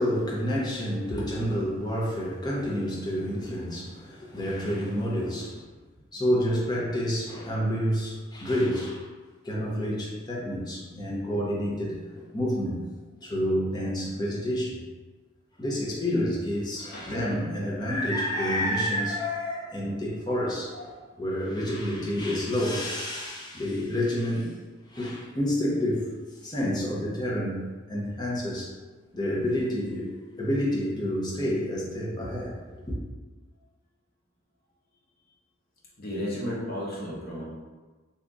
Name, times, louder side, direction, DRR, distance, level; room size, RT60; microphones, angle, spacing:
voice 1, 0.0-5.7 6.1-9.1 9.4-12.9 13.2-14.8 15.6-24.5 24.9-26.1 26.4-28.7 29.1-33.0, equal, 20° left, -5 dB, 0.7 m, -29 dB
voice 2, 23.2-23.6 24.8-25.0 35.2-35.3 36.0-37.5, equal, 50° left, -5 dB, 0.9 m, -35 dB
2.8 x 2.4 x 3.6 m, 1.3 s
head